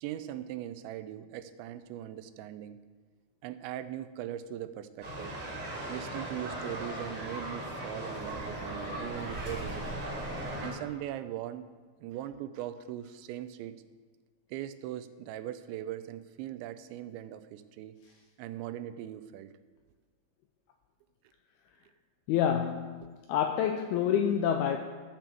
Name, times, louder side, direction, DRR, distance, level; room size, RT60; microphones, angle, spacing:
voice 1, 0.0-2.8 3.4-5.4 5.9-10.1 10.6-11.7 12.0-13.8 14.5-18.0 18.4-19.5 23.0-23.1, right 12 dB, 90° right, 11 dB, 2.9 m, -40 dB
sound 1, 5.0-10.7, right 1 dB, 30° right, 3.3 m, -38 dB
voice 2, 22.3-23.0 23.3-24.8, left 9 dB, 85° left, 4 dB, 2.2 m, -27 dB
13.5 x 5.8 x 7.0 m, 1.4 s
omnidirectional pair, 5.1 m